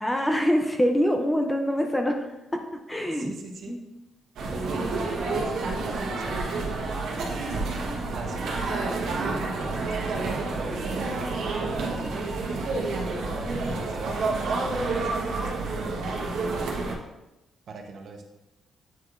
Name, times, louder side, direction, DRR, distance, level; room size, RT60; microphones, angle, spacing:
voice 1, 0.0-2.6 2.9-3.3 3.7-3.8 4.8-4.9, equal, 10° left, 4 dB, 0.4 m, -25 dB
voice 2, 3.1-3.8 4.5-7.0 8.1-16.7 17.7-18.2, right 3 dB, 45° right, 3 dB, 0.8 m, -42 dB
sound 1, 4.4-17.0, right 3 dB, 75° right, 1.1 m, -29 dB
9.0 x 4.8 x 2.5 m, 0.98 s
cardioid pair, 170°, 0 cm